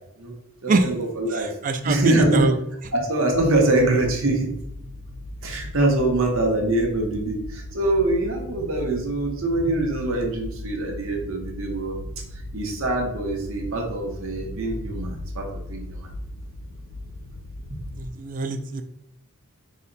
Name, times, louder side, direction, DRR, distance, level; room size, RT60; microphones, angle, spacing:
voice 1, 0.6-1.5 1.8-2.5 2.9-4.5 5.4-12.0 12.3-16.1 17.7-17.8, right 2 dB, 60° right, 0 dB, 0.8 m, -24 dB
voice 2, 1.3-2.5 18.0-18.8, right 3 dB, 35° right, 8 dB, 0.3 m, -24 dB
sound 1, 3.3-18.1, left 1 dB, 45° left, 0.4 m, -37 dB
4.0 x 2.1 x 3.9 m, 0.77 s
head